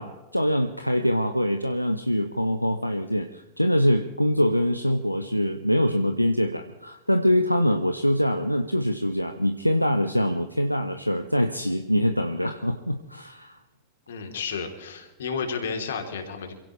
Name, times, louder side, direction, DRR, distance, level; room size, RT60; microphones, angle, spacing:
voice 1, 0.0-13.6, equal, 90° left, 7 dB, 0.8 m, -24 dB
voice 2, 14.1-16.5, left 5 dB, 65° left, 4 dB, 3.1 m, -32 dB
27.5 x 16.5 x 3.2 m, 1.0 s
figure-of-eight pair, 90°, 0 cm